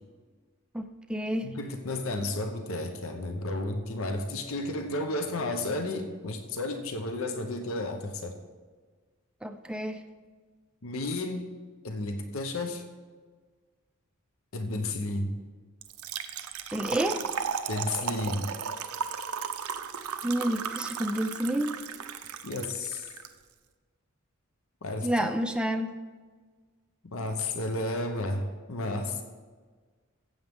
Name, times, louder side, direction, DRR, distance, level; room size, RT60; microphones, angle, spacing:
voice 1, 0.7-1.5 9.4-10.0 16.7-17.2 20.2-21.8 25.0-25.9, right 1 dB, 5° right, 6 dB, 0.5 m, -29 dB
voice 2, 1.4-8.3 10.8-11.5 11.8-12.8 14.5-15.4 17.7-18.5 22.4-23.1 24.8-25.3 27.1-29.2, left 2 dB, 65° left, 6 dB, 0.9 m, -32 dB
Trickle dribble / Fill (with liquid), 15.8-23.3, right 7 dB, 85° right, 0.7 m, -35 dB
15.0 x 7.9 x 3.7 m, 1.5 s
head